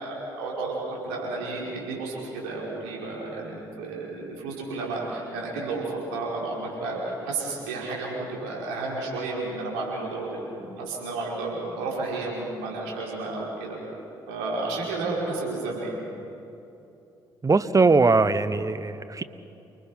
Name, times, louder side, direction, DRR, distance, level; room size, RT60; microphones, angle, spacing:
voice 1, 0.0-13.8 14.3-16.0, right 3 dB, 75° right, -3 dB, 5.2 m, -32 dB
voice 2, 17.4-19.2, right 3 dB, 25° right, 13 dB, 1.1 m, -20 dB
29.5 x 20.0 x 5.8 m, 2.8 s
figure-of-eight pair, 45°, 12 cm